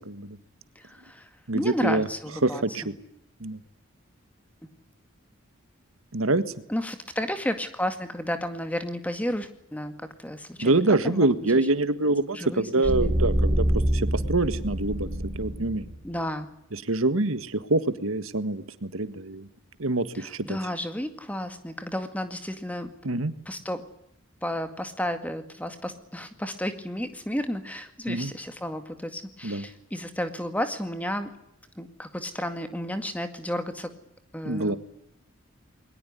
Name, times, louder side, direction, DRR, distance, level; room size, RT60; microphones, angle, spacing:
voice 1, 0.1-0.4 1.5-2.1 2.4-2.9 3.4-3.6 6.1-6.5 10.6-13.6 13.9-15.9 16.7-19.5 19.8-20.6 23.0-23.3 28.1-28.3 29.4-29.6 34.4-34.8, right 2 dB, 85° right, 12 dB, 1.7 m, -25 dB
voice 2, 0.8-2.6 6.7-11.5 12.3-13.1 16.0-16.5 20.1-22.9 23.5-23.8 24.4-31.3 31.8-33.9 34.3-34.8, equal, 5° left, 8 dB, 2.0 m, -32 dB
sound 1, 12.8-16.0, right 1 dB, 50° right, 7.8 m, -26 dB
22.0 x 19.5 x 9.7 m, 0.76 s
head